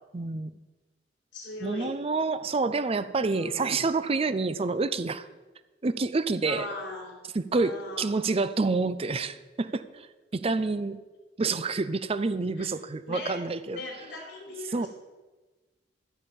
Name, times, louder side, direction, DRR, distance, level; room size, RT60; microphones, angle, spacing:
voice 1, 0.1-0.5 1.6-5.3 5.8-6.7 7.3-10.1 10.3-11.0 11.4-13.8 14.7-14.9, right 3 dB, 30° right, 13 dB, 0.5 m, -28 dB
voice 2, 1.3-2.0 3.3-3.9 6.5-7.1 7.5-8.1 12.6-12.7 13.1-13.4 13.6-14.9, left 2 dB, 80° left, -3 dB, 3.9 m, -39 dB
13.5 x 5.5 x 7.0 m, 1.2 s
head